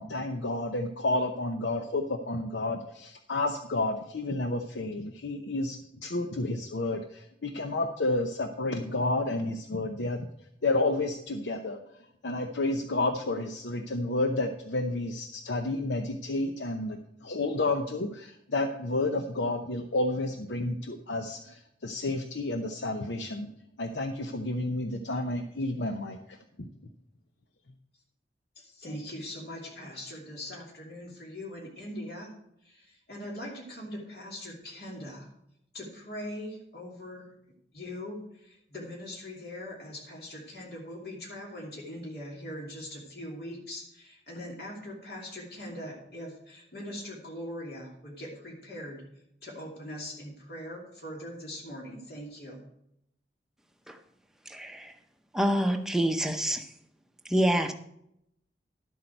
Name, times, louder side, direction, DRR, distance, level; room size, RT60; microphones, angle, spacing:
voice 1, 0.0-10.2 10.6-11.8 12.2-23.5 23.8-26.7, left 2 dB, 75° left, 5 dB, 0.8 m, -31 dB
voice 2, 28.6-32.3 32.6-35.3 35.7-37.3 37.7-49.0 49.4-52.6, left 1 dB, 55° left, -2 dB, 2.7 m, -41 dB
voice 3, 54.5-54.9 55.3-56.7 57.3-57.7, equal, 5° right, 5 dB, 0.7 m, -26 dB
12.0 x 8.2 x 4.5 m, 0.76 s
head